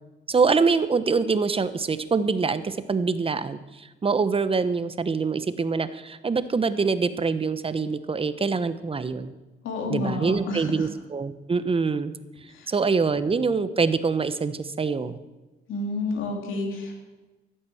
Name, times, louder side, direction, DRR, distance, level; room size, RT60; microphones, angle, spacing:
voice 1, 0.3-9.3 9.9-12.1 12.7-15.2, right 4 dB, 30° right, 13 dB, 0.9 m, -25 dB
voice 2, 9.6-10.9 12.5-12.7 15.7-17.0, left 2 dB, 80° left, 1 dB, 3.3 m, -30 dB
14.5 x 8.7 x 7.1 m, 1.1 s
cardioid pair, 90°, 20 cm